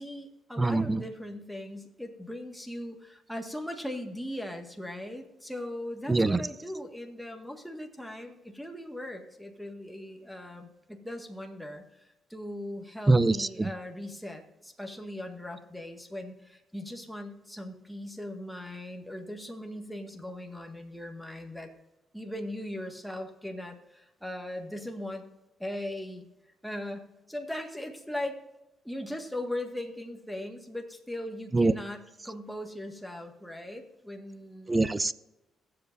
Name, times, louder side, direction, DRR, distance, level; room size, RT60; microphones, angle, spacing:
voice 1, 0.0-21.7 22.1-25.3 25.6-26.3 26.6-28.4 28.8-34.7, left 1 dB, ahead, 2 dB, 1.8 m, -39 dB
voice 2, 0.6-1.0 6.1-6.4 13.1-13.7 31.5-31.7 34.7-35.1, right 2 dB, 20° right, 15 dB, 0.6 m, -23 dB
21.5 x 7.8 x 2.7 m, 0.97 s
cardioid pair, 90°, 0 cm